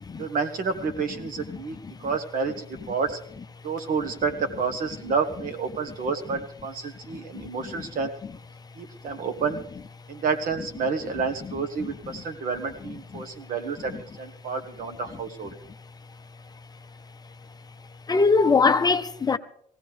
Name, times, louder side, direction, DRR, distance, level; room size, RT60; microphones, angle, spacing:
voice 1, 0.2-1.8 2.0-3.2 3.6-8.1 8.8-9.6 10.1-13.9 14.2-15.5, right 5 dB, 55° right, 1.4 m, -29 dB
voice 2, 18.1-19.4, left 4 dB, 25° left, 0.6 m, -21 dB
19.5 x 16.0 x 3.3 m
cardioid pair, 110°, 17 cm